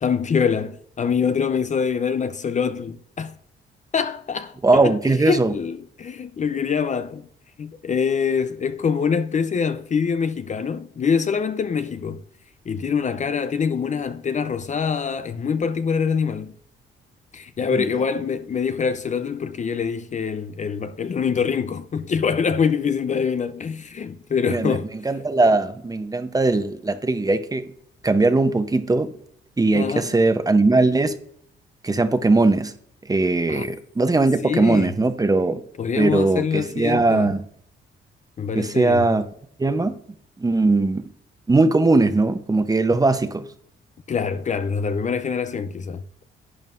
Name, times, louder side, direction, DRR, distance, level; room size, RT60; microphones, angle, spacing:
voice 1, 0.0-3.3 3.9-7.3 7.6-12.2 12.7-16.6 17.3-24.9 29.7-30.1 33.5-33.7 34.4-34.9 35.8-37.3 38.4-39.1 44.1-46.0, left 6 dB, 35° left, 0.6 m, -24 dB
voice 2, 4.6-5.5 17.7-17.8 24.5-24.8 25.0-27.7 28.0-29.1 29.6-31.2 31.8-32.7 33.1-35.6 36.0-37.4 38.6-39.3 39.6-40.0 40.4-41.0 41.5-43.4, right 3 dB, 20° right, 0.7 m, -19 dB
11.0 x 9.0 x 2.5 m
cardioid pair, 90°, 20 cm